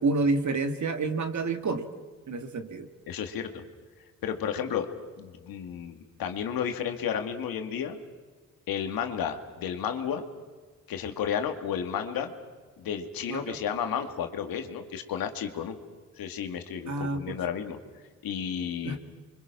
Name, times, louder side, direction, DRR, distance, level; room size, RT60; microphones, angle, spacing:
voice 1, 0.0-1.9 2.3-2.9 13.3-13.6 16.9-17.4 18.8-19.0, right 3 dB, 55° right, 7 dB, 2.3 m, -28 dB
voice 2, 3.1-3.6 4.2-4.9 5.2-8.0 8.7-10.3 10.9-12.3 12.8-15.8 16.2-17.8 18.2-19.0, left 8 dB, 90° left, 6 dB, 2.1 m, -32 dB
29.5 x 24.5 x 6.0 m, 1.4 s
cardioid pair, 65°, 34 cm